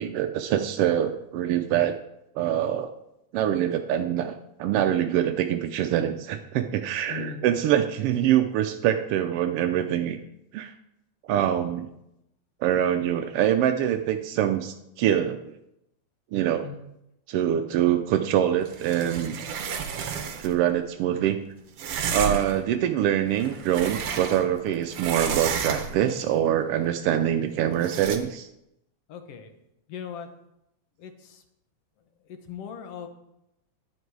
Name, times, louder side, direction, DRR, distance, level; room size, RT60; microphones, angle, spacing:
voice 1, 0.0-2.0 2.3-2.9 3.3-10.2 10.5-10.7 11.3-11.9 12.6-15.5 16.3-16.6 17.3-19.4 20.4-21.4 22.1-28.5, right 10 dB, 85° right, 7 dB, 1.3 m, -24 dB
voice 2, 7.1-7.4 16.6-16.8 29.1-29.5 29.9-30.3 31.0-31.4 32.0-33.1, left 8 dB, 60° left, 7 dB, 1.9 m, -39 dB
sound 1, 18.7-20.6 21.8-22.6 23.3-24.6 24.9-26.1 27.8-28.2, right 7 dB, 60° right, 1.7 m, -31 dB
11.0 x 9.7 x 4.7 m, 0.84 s
omnidirectional pair, 3.4 m